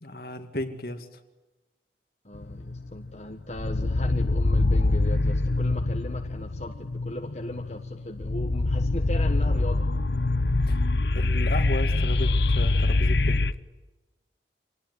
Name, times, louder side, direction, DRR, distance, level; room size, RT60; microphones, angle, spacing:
voice 1, 0.0-1.1 10.7-10.8 11.1-13.4, left 1 dB, 60° left, 7 dB, 2.4 m, -34 dB
voice 2, 2.2-9.8, left 1 dB, 40° left, 3 dB, 1.5 m, -37 dB
sound 1, 2.3-3.1 3.5-13.5, left 2 dB, 75° left, 0.8 m, -24 dB
27.0 x 19.5 x 9.6 m, 1.1 s
head